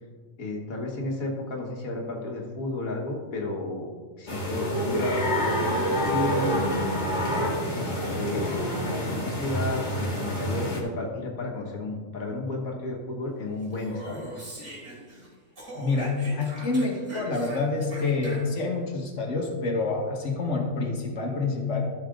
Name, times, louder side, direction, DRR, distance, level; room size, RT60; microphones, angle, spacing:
voice 1, 0.4-3.9 4.2-5.1 5.6-6.6 7.7-14.3, left 2 dB, 85° left, -1 dB, 1.9 m, -32 dB
sound 1, 4.3-10.8, equal, 35° left, 2.0 m, -27 dB
Speech, 13.6-15.3 15.6-18.7, right 1 dB, 70° right, 3.6 m, -42 dB
voice 2, 15.8-21.8, left 3 dB, 60° left, -1 dB, 1.9 m, -27 dB
14.0 x 6.5 x 3.8 m, 1.5 s
omnidirectional pair, 1.4 m